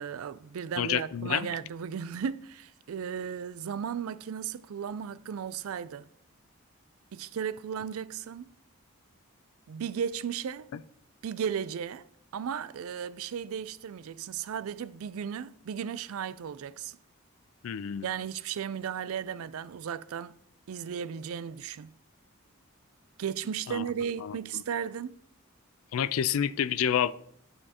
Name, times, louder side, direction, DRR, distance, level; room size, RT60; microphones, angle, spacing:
voice 1, 0.0-6.1 7.1-8.5 9.7-10.7 11.2-12.1 12.3-17.0 18.0-20.4 20.7-21.9 23.2-25.1, right 7 dB, 75° right, 0.4 m, -35 dB
voice 2, 0.8-1.5 17.6-18.1 23.7-23.8 24.2-24.4 25.9-27.1, left 9 dB, 75° left, 0.3 m, -28 dB
8.5 x 6.7 x 2.9 m
head